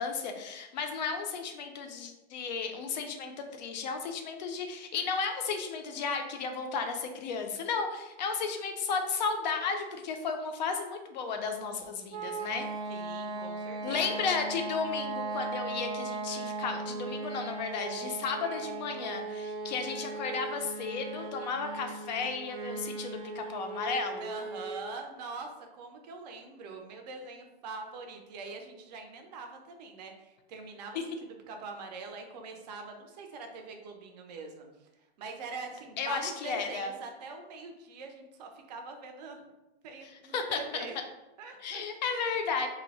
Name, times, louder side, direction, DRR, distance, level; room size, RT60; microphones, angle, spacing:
voice 1, 0.0-12.7 13.8-24.3 30.9-31.0 36.0-36.9 40.3-40.9 41.6-42.7, left 5 dB, 45° left, 5 dB, 0.4 m, -34 dB
sound 1, 12.1-24.9, right 3 dB, 85° right, 0.6 m, -38 dB
voice 2, 12.9-14.3 24.2-31.0 31.5-34.7 35.2-39.4 39.8-41.0 41.4-41.9, right 3 dB, 40° right, 3 dB, 0.5 m, -43 dB
2.7 x 2.0 x 3.9 m, 1.0 s
supercardioid pair, 170°, 32 cm